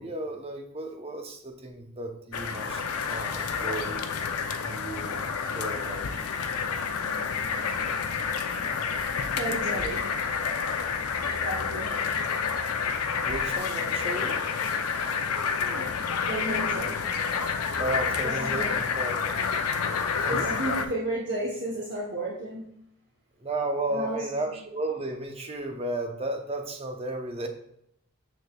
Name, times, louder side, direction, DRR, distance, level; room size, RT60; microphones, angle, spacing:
voice 1, 0.0-4.0 4.6-6.1 13.2-14.4 17.8-19.2 20.2-20.6 23.4-27.5, right 2 dB, 25° right, 4 dB, 0.7 m, -34 dB
sound 1, 2.3-20.9, left 6 dB, 90° left, 0.5 m, -29 dB
voice 2, 9.4-10.2 11.4-12.0 15.6-15.9 16.3-17.0 18.2-18.8 20.3-22.7 23.9-24.3, right 1 dB, 50° right, -5 dB, 0.9 m, -33 dB
6.6 x 6.4 x 2.3 m, 0.74 s
head